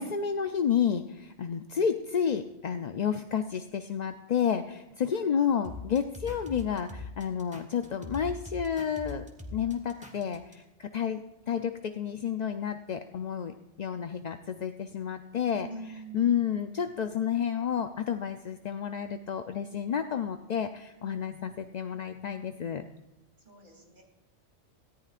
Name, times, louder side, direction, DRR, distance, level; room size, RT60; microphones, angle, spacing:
voice 1, 0.0-15.7 16.1-22.8, left 8 dB, 50° left, 7 dB, 0.5 m, -30 dB
voice 2, 5.1-5.6 15.5-16.5 23.4-24.0, right 3 dB, 40° right, 1 dB, 3.1 m, -45 dB
sound 1, 5.6-10.5, left 3 dB, 5° right, 1.5 m, -42 dB
18.0 x 14.5 x 2.5 m, 1.0 s
omnidirectional pair, 1.3 m